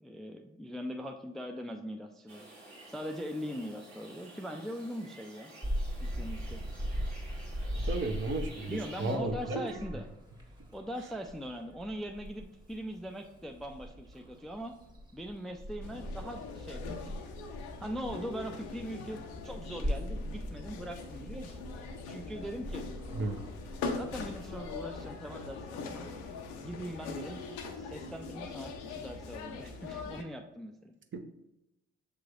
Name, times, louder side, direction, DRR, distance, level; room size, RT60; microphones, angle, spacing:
voice 1, 0.0-5.5 6.0-6.8 8.7-10.1 10.7-14.8 15.1-17.2 17.8-21.7 22.1-22.8 24.0-26.1 26.6-27.4 27.8-30.9, equal, ahead, 4 dB, 0.4 m, -41 dB
sound 1, 2.3-9.2, right 2 dB, 90° right, 1.2 m, -51 dB
Purr / Meow, 5.6-25.1, equal, 15° right, 1.4 m, -41 dB
voice 2, 7.7-9.6 23.1-23.4 31.1-31.2, right 2 dB, 40° right, 5 dB, 0.8 m, -34 dB
sound 2, 15.8-30.2, left 4 dB, 80° left, 0.6 m, -42 dB
6.7 x 3.1 x 2.5 m, 0.90 s
hypercardioid pair, 50°, 29 cm